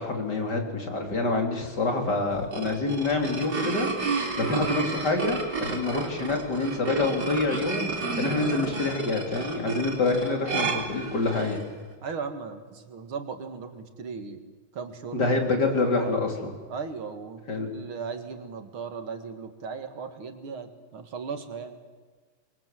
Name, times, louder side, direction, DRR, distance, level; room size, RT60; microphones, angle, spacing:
voice 1, 0.0-11.6 15.1-16.5 17.5-17.7, left 3 dB, 55° left, 3 dB, 4.1 m, -27 dB
sound 1, 2.3-11.6, right 4 dB, 50° right, 4.1 m, -31 dB
voice 2, 12.0-14.4 14.7-15.2 15.7-16.2 16.7-21.8, right 5 dB, 90° right, 7 dB, 2.8 m, -37 dB
26.0 x 23.0 x 7.7 m, 1.4 s
omnidirectional pair, 2.2 m